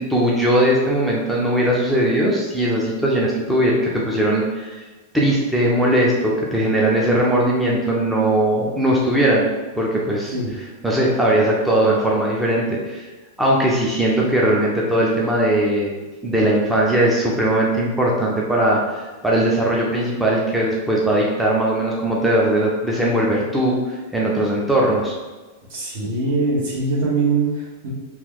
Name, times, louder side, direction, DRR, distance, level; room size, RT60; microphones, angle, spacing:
voice 1, 0.0-4.8 5.1-9.5 9.7-10.3 10.8-13.1 13.4-15.9 16.2-25.2, right 1 dB, 5° right, -4 dB, 0.4 m, -19 dB
voice 2, 25.7-27.9, right 3 dB, 65° right, -4 dB, 1.2 m, -22 dB
2.9 x 2.2 x 3.7 m, 1.2 s
supercardioid pair, 155°, 0 cm